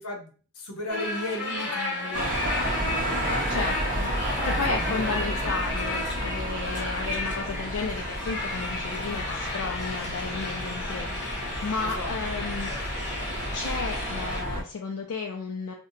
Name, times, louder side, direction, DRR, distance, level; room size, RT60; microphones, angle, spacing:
voice 1, 0.0-3.7 4.5-5.6 11.8-12.1, left 1 dB, 85° left, 1 dB, 0.8 m, -36 dB
sound 1, 0.9-14.4, left 3 dB, 50° left, 1.0 m, -33 dB
sound 2, 2.1-14.6, right 1 dB, 40° right, 0.6 m, -32 dB
voice 2, 3.5-12.7 13.5-15.7, left 4 dB, 65° left, 1 dB, 0.4 m, -33 dB
2.8 x 2.1 x 2.5 m, 0.39 s
head